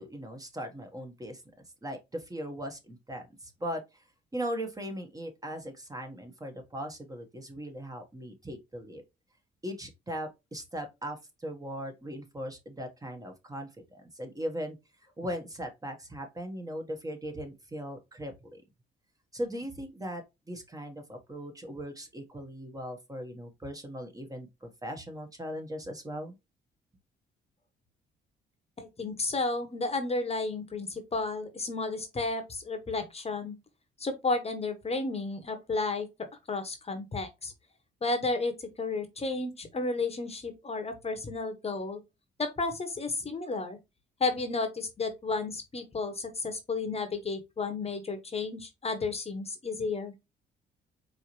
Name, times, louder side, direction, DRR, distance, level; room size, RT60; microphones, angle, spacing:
voice 1, 0.0-1.4 1.8-4.0 4.3-9.0 9.6-14.8 15.2-18.6 19.3-26.3, equal, 15° right, 1.2 m, -39 dB
voice 2, 28.8-33.6 34.0-36.1 36.5-37.5 38.0-42.0 42.4-43.8 44.2-50.1, left 3 dB, 30° left, 1.0 m, -32 dB
4.6 x 2.8 x 3.0 m
cardioid pair, 90°, 20 cm